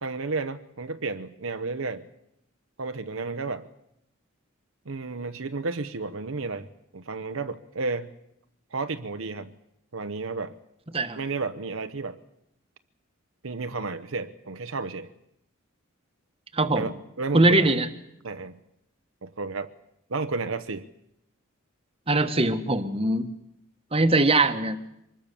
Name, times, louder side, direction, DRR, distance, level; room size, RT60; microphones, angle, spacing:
voice 1, 0.0-2.1 2.8-3.6 4.9-6.7 6.9-8.1 8.7-9.5 9.9-10.5 11.2-12.2 13.4-15.1 16.7-17.7 18.2-18.6 19.2-19.7 20.1-20.9, right 3 dB, 75° right, 9 dB, 1.0 m, -32 dB
voice 2, 16.5-16.9 17.3-17.9 22.1-23.3 23.9-24.8, right 2 dB, 30° right, 8 dB, 1.4 m, -21 dB
24.5 x 20.5 x 7.0 m, 0.79 s
head